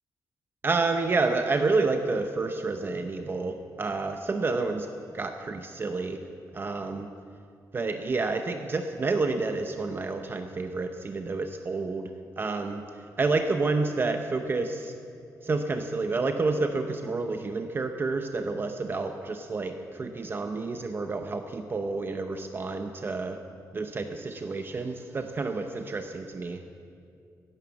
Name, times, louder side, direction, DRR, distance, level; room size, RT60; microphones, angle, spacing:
voice 1, 0.6-4.9 5.1-6.2 6.5-7.1 7.7-12.1 12.4-12.8 13.2-14.9 15.4-23.4 23.7-26.6, right 3 dB, 35° right, 6 dB, 0.8 m, -29 dB
16.5 x 11.0 x 7.1 m, 2.4 s
wide cardioid pair, 130°, 7 cm